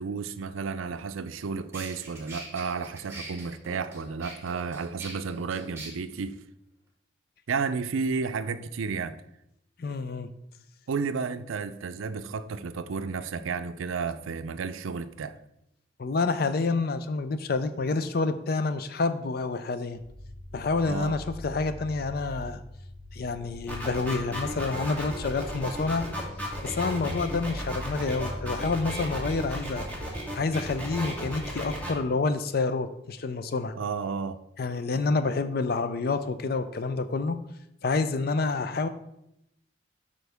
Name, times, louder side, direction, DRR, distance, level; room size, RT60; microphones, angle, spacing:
voice 1, 0.0-6.4 7.5-9.2 10.9-15.4 20.8-21.2 33.7-34.4, right 5 dB, 85° right, 0.4 m, -32 dB
sound 1, 1.7-5.9, right 2 dB, 15° right, 1.6 m, -43 dB
voice 2, 9.8-10.3 16.0-20.0 20.5-22.6 23.1-26.1 26.6-29.9 30.3-33.8 34.6-37.4 37.8-38.9, left 3 dB, 50° left, 0.4 m, -28 dB
sound 2, 19.9-30.1, left 1 dB, 80° left, 2.1 m, -42 dB
sound 3, 23.7-31.9, equal, 10° left, 1.3 m, -34 dB
8.0 x 5.3 x 3.4 m
head